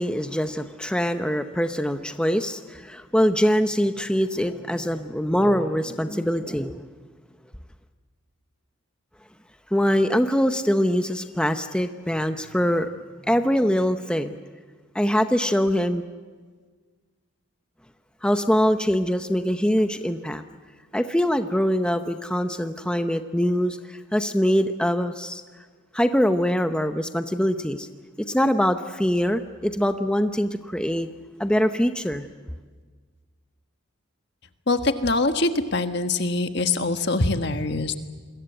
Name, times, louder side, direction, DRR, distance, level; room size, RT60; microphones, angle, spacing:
voice 1, 0.0-6.9 9.7-12.9 13.3-14.4 14.9-16.0 18.2-20.4 20.9-25.4 25.9-27.9 28.3-31.1 31.4-32.3, equal, 5° left, 7 dB, 0.7 m, -23 dB
voice 2, 34.7-38.0, left 2 dB, 50° left, 8 dB, 1.5 m, -23 dB
27.5 x 22.0 x 8.0 m, 1.5 s
head